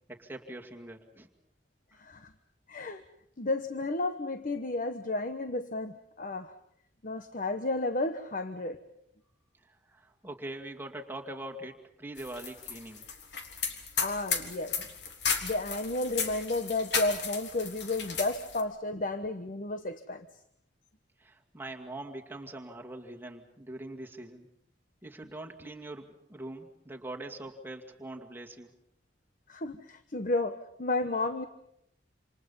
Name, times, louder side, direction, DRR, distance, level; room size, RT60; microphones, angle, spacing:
voice 1, 0.1-1.3 9.9-13.0 21.2-24.5 25.0-28.7, right 1 dB, 15° right, 1 dB, 2.3 m, -43 dB
voice 2, 2.0-2.3 2.7-3.0 3.4-6.5 7.0-8.8 14.0-14.8 15.4-20.3 29.5-31.4, left 2 dB, 50° left, 9 dB, 1.1 m, -32 dB
sound 1, 12.2-18.6, left 6 dB, 85° left, 3.3 m, -34 dB
28.0 x 27.5 x 5.6 m, 0.75 s
head